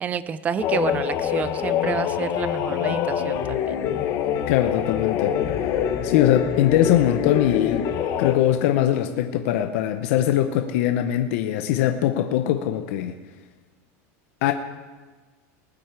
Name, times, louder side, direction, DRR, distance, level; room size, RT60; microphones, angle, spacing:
voice 1, 0.0-3.8, right 7 dB, 20° right, 15 dB, 0.4 m, -29 dB
sound 1, 0.6-8.3, left 9 dB, 40° left, 1.0 m, -25 dB
voice 2, 4.5-5.4 6.0-7.9 8.2-13.1 14.4-14.5, left 11 dB, 60° left, 7 dB, 0.7 m, -21 dB
19.5 x 7.9 x 4.7 m, 1.3 s
supercardioid pair, 160°, 8 cm